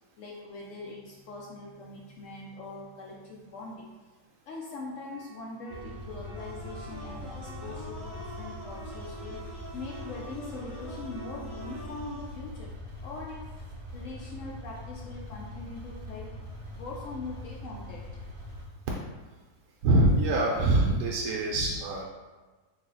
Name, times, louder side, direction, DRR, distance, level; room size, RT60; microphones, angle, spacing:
voice 1, 0.2-3.9 4.5-9.4 9.7-12.7 13.0-13.5 13.9-16.3 16.7-18.1, left 3 dB, 75° left, -2 dB, 0.7 m, -42 dB
sound 1, 5.1-11.9, right 3 dB, 25° left, 1.3 m, -50 dB
sound 2, 5.7-18.6, left 1 dB, 40° right, 0.3 m, -42 dB
sound 3, 6.3-12.3, equal, 60° left, 1.8 m, -45 dB
voice 2, 19.8-22.0, right 1 dB, 75° right, -3 dB, 1.1 m, -24 dB
3.3 x 2.7 x 3.7 m, 1.3 s
omnidirectional pair, 1.8 m